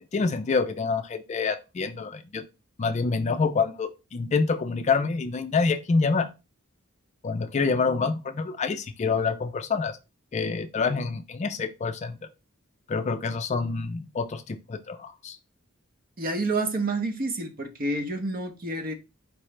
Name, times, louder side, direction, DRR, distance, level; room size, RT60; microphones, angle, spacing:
voice 1, 0.1-2.4 2.8-6.3 7.2-10.0 10.3-12.2 12.9-15.4, left 4 dB, 35° left, 0.4 m, -27 dB
voice 2, 16.2-18.9, right 2 dB, 45° right, 0.8 m, -29 dB
4.6 x 3.0 x 3.2 m
head